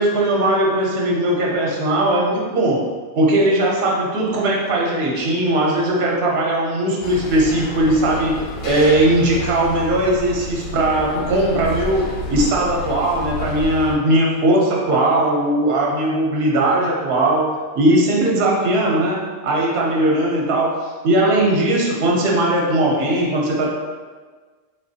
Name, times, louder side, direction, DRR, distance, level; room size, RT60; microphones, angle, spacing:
voice 1, 0.0-2.9 3.2-23.7, right 1 dB, 60° right, -2 dB, 1.0 m, -19 dB
sound 1, 7.0-14.0, left 2 dB, 60° left, 0.6 m, -30 dB
4.0 x 3.9 x 2.7 m, 1.4 s
omnidirectional pair, 1.2 m